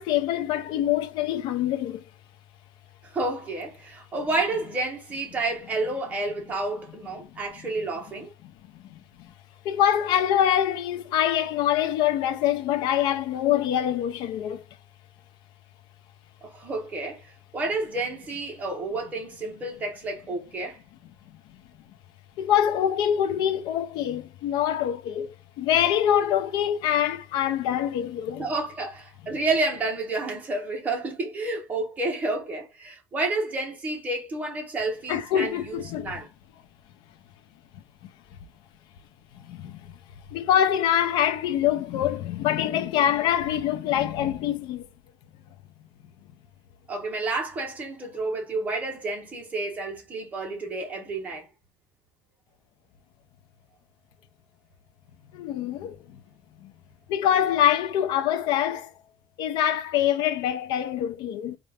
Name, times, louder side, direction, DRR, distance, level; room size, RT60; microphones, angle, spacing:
voice 1, 0.0-2.0 7.3-7.4 8.7-8.8 9.6-14.6 22.4-28.4 35.1-36.1 39.3-39.9 40.3-44.9 55.3-56.2 56.6-56.7 57.1-58.9 59.4-61.6, left 10 dB, 65° left, 0.7 m, -25 dB
voice 2, 3.0-8.3 16.4-20.8 28.4-36.3 46.9-51.5, right 2 dB, 20° right, 1.3 m, -30 dB
4.3 x 2.6 x 3.4 m
cardioid pair, 165°, 8 cm